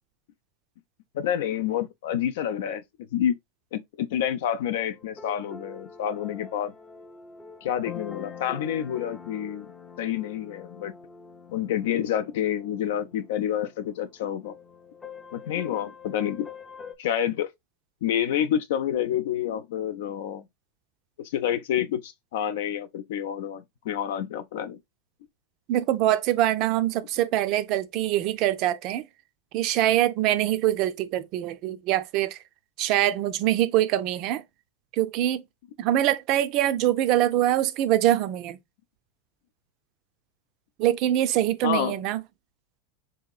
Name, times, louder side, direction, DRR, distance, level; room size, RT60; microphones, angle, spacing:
voice 1, 1.1-3.3 3.7-6.7 7.6-9.7 10.0-10.9 11.5-14.6 15.3-16.5 17.0-17.5 18.0-20.5 21.2-24.8 41.6-42.0, left 10 dB, 70° left, 0.5 m, -28 dB
sound 1, 4.7-17.0, left 6 dB, 15° left, 0.5 m, -44 dB
voice 2, 25.7-29.0 29.5-32.4 32.8-34.4 35.0-35.4 35.8-38.6 40.8-42.2, right 13 dB, 45° right, 0.4 m, -24 dB
3.8 x 2.8 x 2.3 m
supercardioid pair, 135°, 0 cm